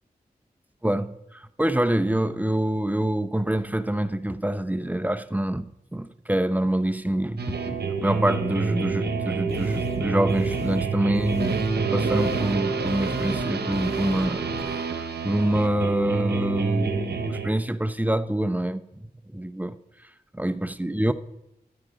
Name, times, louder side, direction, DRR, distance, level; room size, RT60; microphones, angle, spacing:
voice 1, 0.8-5.7 5.9-18.8 19.3-19.7 20.3-21.1, right 1 dB, 10° right, 0.6 m, -26 dB
sound 1, 7.4-17.5, right 4 dB, 85° right, 0.9 m, -27 dB
sound 2, 9.5-14.6, right 1 dB, 35° left, 1.8 m, -37 dB
12.0 x 8.9 x 5.2 m
cardioid pair, 45°, 17 cm